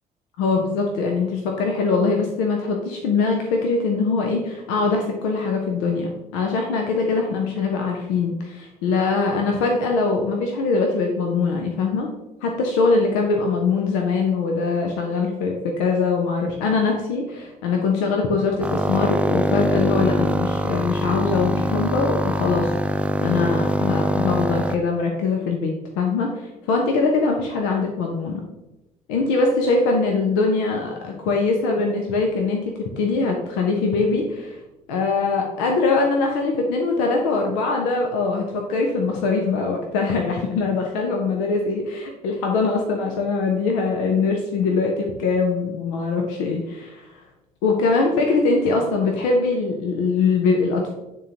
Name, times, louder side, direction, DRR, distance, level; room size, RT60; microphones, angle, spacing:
voice 1, 0.4-12.1 12.4-22.7 23.2-28.4 29.1-34.6 34.9-47.0 47.6-50.9, left 4 dB, 70° left, 1 dB, 0.7 m, -22 dB
sound 1, 18.6-24.8, equal, 5° right, 0.4 m, -23 dB
9.1 x 3.8 x 2.9 m, 0.97 s
figure-of-eight pair, 50°, 20 cm